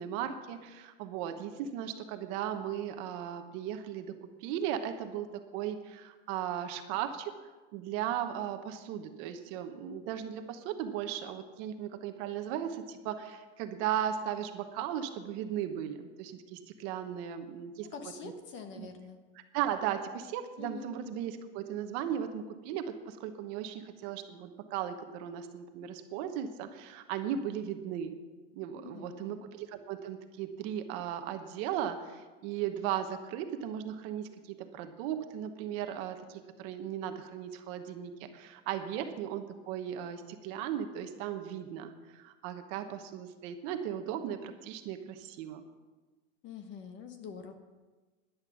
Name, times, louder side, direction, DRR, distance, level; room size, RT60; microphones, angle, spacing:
voice 1, 0.0-4.2 4.4-7.3 7.7-17.9 18.2-18.3 18.8-18.9 19.5-28.1 28.5-45.6, right 10 dB, 45° right, 7 dB, 1.1 m, -37 dB
voice 2, 17.8-19.2 20.6-21.0 28.7-29.4 46.4-47.5, left 6 dB, 30° left, 7 dB, 1.1 m, -45 dB
10.5 x 10.5 x 6.3 m, 1.3 s
supercardioid pair, 155°, 37 cm